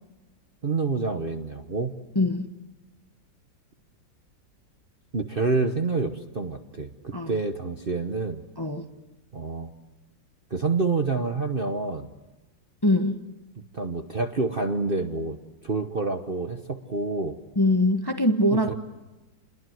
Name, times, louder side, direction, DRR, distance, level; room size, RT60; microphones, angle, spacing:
voice 1, 0.6-1.9 5.1-8.4 9.3-9.7 10.5-12.1 13.7-15.4 15.6-17.4 18.7-18.8, right 3 dB, 35° right, 6 dB, 1.1 m, -27 dB
voice 2, 2.1-2.5 7.1-7.3 8.6-8.9 12.8-13.3 17.6-18.7, left 1 dB, 15° left, 5 dB, 1.0 m, -22 dB
29.5 x 22.0 x 7.8 m, 1.1 s
omnidirectional pair, 2.1 m